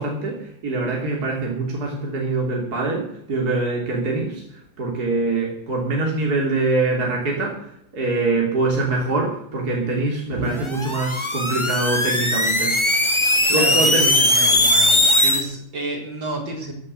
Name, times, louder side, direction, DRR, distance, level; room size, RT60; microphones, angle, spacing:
voice 1, 0.0-12.8 13.5-14.2, right 3 dB, 50° right, -1 dB, 3.6 m, -24 dB
sound 1, 10.6-15.4, left 1 dB, 15° left, 2.2 m, -19 dB
voice 2, 13.5-16.7, right 1 dB, 70° right, 1 dB, 5.0 m, -30 dB
16.0 x 9.8 x 6.6 m, 0.75 s
omnidirectional pair, 2.1 m